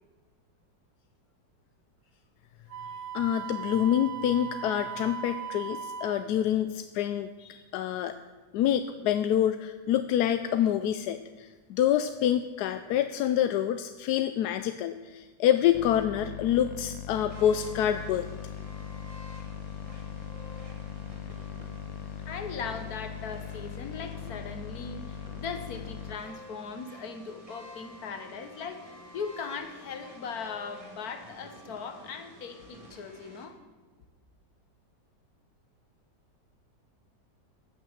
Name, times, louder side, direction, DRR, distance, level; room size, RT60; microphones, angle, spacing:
Wind instrument woodwind instrument, 2.7-6.3, right 7 dB, 65° right, 0.8 m, -38 dB
voice 1, 3.1-8.2 8.5-18.3, left 10 dB, 70° left, 10 dB, 1.0 m, -27 dB
sound 1, 15.7-26.2, left 9 dB, 90° left, 1.4 m, -40 dB
sound 2, 17.3-33.5, equal, 20° right, 1.8 m, -50 dB
voice 2, 22.2-33.6, left 5 dB, 55° left, 7 dB, 1.5 m, -39 dB
15.5 x 6.1 x 7.1 m, 1.3 s
omnidirectional pair, 2.0 m